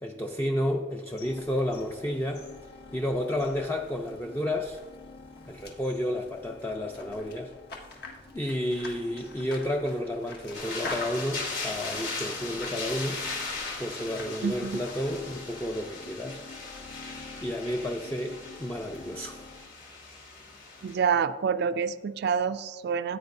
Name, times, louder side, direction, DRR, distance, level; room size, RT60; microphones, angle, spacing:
voice 1, 0.0-2.4 2.9-4.8 5.5-7.5 8.3-13.2 13.8-16.4 17.4-19.5, left 1 dB, 10° left, 2 dB, 0.5 m, -31 dB
sound 1, 1.1-15.2, left 3 dB, 60° left, 1.6 m, -47 dB
sound 2, 1.2-19.6, left 3 dB, 30° left, 1.1 m, -50 dB
sound 3, 10.5-20.9, left 3 dB, 85° left, 2.9 m, -38 dB
voice 2, 14.4-14.8 20.8-23.2, right 6 dB, 60° right, 11 dB, 0.3 m, -27 dB
14.5 x 8.8 x 2.6 m, 1.3 s
head